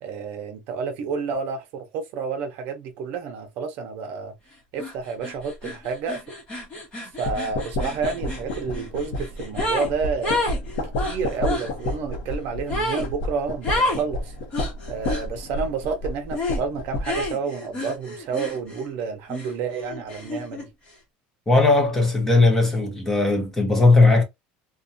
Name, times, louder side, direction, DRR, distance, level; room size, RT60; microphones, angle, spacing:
voice 1, 0.0-4.3 4.7-6.3 7.2-10.5 11.0-14.3 14.9-20.7, right 5 dB, 55° right, 0.6 m, -30 dB
sound 1, 4.8-4.9 5.2-9.9 10.2-11.7 12.7-13.1 13.6-14.0 14.5-15.3 16.3-16.6 17.0-18.9 19.3-20.7, left 1 dB, 30° left, 0.9 m, -29 dB
sound 2, 7.2-17.3, left 1 dB, 70° left, 0.8 m, -31 dB
voice 2, 21.5-24.2, left 3 dB, 10° left, 0.6 m, -18 dB
2.6 x 2.1 x 2.5 m
cardioid pair, 160°, 4 cm